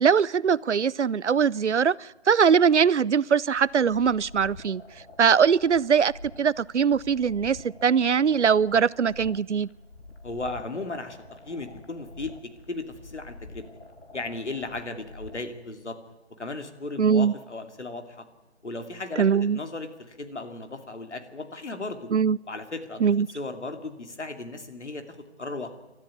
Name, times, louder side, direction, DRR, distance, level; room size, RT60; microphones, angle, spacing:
voice 1, 0.0-4.8 5.2-6.1 6.4-9.7 17.0-17.3 19.2-19.6 22.1-22.4 23.0-23.3, right 6 dB, 85° right, 23 dB, 0.7 m, -21 dB
sound 1, 3.5-15.6, left 2 dB, 70° left, 3.0 m, -47 dB
voice 2, 10.2-11.2 11.4-13.6 14.1-16.0 16.4-18.3 18.6-19.3 19.5-22.1 22.5-23.0 23.3-25.7, left 2 dB, 85° left, 7 dB, 3.0 m, -36 dB
28.0 x 13.0 x 9.5 m, 1.1 s
figure-of-eight pair, 160°, 34 cm